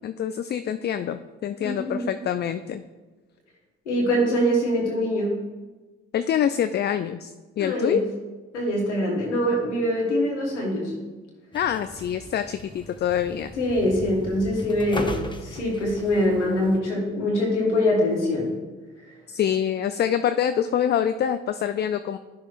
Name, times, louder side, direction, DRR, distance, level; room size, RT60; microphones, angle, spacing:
voice 1, 0.0-2.8 6.1-8.0 11.5-13.5 19.3-22.2, left 9 dB, 30° left, 10 dB, 0.4 m, -25 dB
voice 2, 1.6-2.1 3.9-5.3 7.6-8.0 8.5-10.9 13.6-18.5 19.0-19.1, left 1 dB, 90° left, -2 dB, 1.1 m, -24 dB
sound 1, 11.5-16.8, left 1 dB, 15° left, 0.8 m, -38 dB
11.5 x 6.1 x 2.5 m, 1.2 s
hypercardioid pair, 45°, 34 cm